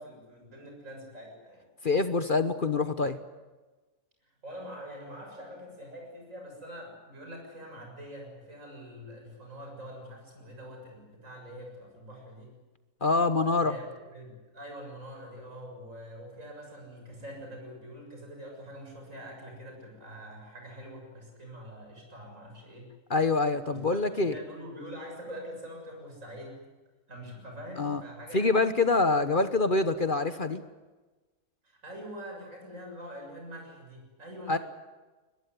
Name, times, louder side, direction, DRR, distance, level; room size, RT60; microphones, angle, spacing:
voice 1, 0.0-1.7 4.4-12.6 13.6-22.9 23.7-26.7 27.1-28.6 31.6-34.6, equal, 55° right, 1 dB, 7.4 m, -44 dB
voice 2, 1.8-3.2 13.0-13.7 23.1-24.4 27.8-28.0 28.3-30.6 34.5-34.6, left 3 dB, 40° left, 10 dB, 1.1 m, -25 dB
21.5 x 21.5 x 9.5 m, 1.2 s
omnidirectional pair, 1.6 m